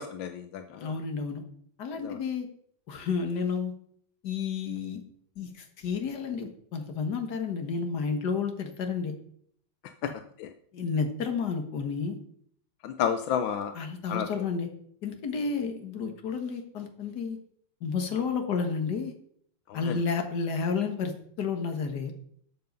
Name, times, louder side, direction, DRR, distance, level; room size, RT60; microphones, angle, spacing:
voice 1, 0.0-0.9 2.0-2.2 10.0-10.1 10.4-10.5 12.8-13.7 14.1-14.3 19.7-20.0, left 8 dB, 85° left, 8 dB, 1.5 m, -31 dB
voice 2, 0.7-1.4 1.8-2.5 2.9-3.7 4.2-5.0 5.4-9.1 10.7-12.2 13.8-14.7 15.0-17.4 17.8-19.1 19.7-21.1 21.4-22.1, left 5 dB, 60° left, 5 dB, 2.0 m, -31 dB
12.5 x 7.6 x 5.4 m, 0.64 s
omnidirectional pair, 2.1 m